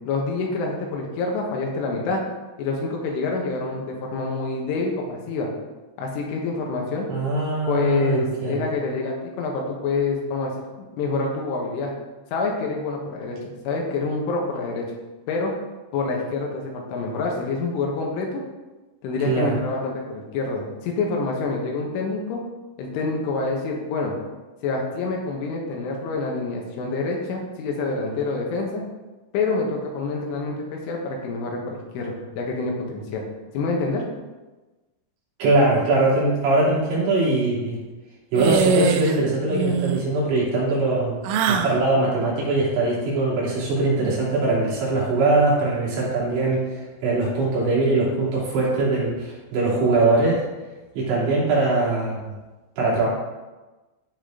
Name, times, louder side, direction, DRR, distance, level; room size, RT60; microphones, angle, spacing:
voice 1, 0.1-2.2 2.6-5.5 6.0-7.1 7.7-10.5 11.0-11.9 12.3-13.4 13.7-14.9 15.3-15.5 15.9-18.4 19.0-22.4 22.8-24.2 24.6-28.8 29.3-33.3 33.5-34.0, left 3 dB, 85° left, 0 dB, 3.9 m, -27 dB
voice 2, 7.1-8.7 19.2-19.6 35.4-37.8 38.3-41.2 41.5-50.4 51.0-52.2 52.8-53.1, right 2 dB, 70° right, -7 dB, 5.5 m, -21 dB
sound 1, 38.4-39.2 39.5-40.0 41.2-41.8, right 5 dB, 90° right, 3.2 m, -22 dB
15.0 x 5.2 x 3.9 m, 1.2 s
omnidirectional pair, 5.5 m